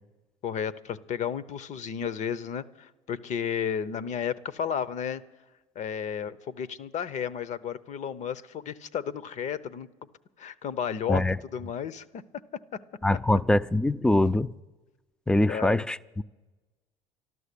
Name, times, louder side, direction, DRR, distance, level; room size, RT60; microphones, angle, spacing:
voice 1, 0.4-5.2 5.7-9.9 10.4-11.2 11.5-12.2 15.5-15.9, left 8 dB, 50° left, 0.8 m, -33 dB
voice 2, 13.0-14.5 15.3-16.2, left 1 dB, 5° left, 0.4 m, -23 dB
12.5 x 12.5 x 8.4 m
supercardioid pair, 85°, 15 cm